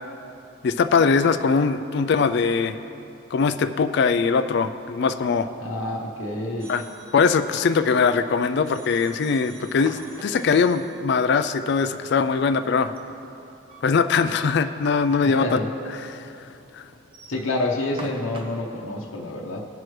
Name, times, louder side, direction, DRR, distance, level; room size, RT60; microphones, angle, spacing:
voice 1, 0.6-2.8 3.3-5.5 6.7-6.8 7.1-12.9 13.8-15.6 15.9-16.3 16.7-16.8, left 5 dB, 55° left, 9 dB, 0.3 m, -21 dB
voice 2, 5.6-6.7 15.2-15.7 17.3-19.7, left 2 dB, 80° left, -2 dB, 0.9 m, -28 dB
sound 1, 6.6-11.1, right 2 dB, 85° right, 1.5 m, -49 dB
sound 2, 9.6-10.7 12.8-14.0 14.4-14.5 14.8-14.9 15.7-15.8 16.9-18.7, right 1 dB, 25° right, 0.8 m, -44 dB
18.0 x 6.0 x 3.2 m, 2.8 s
head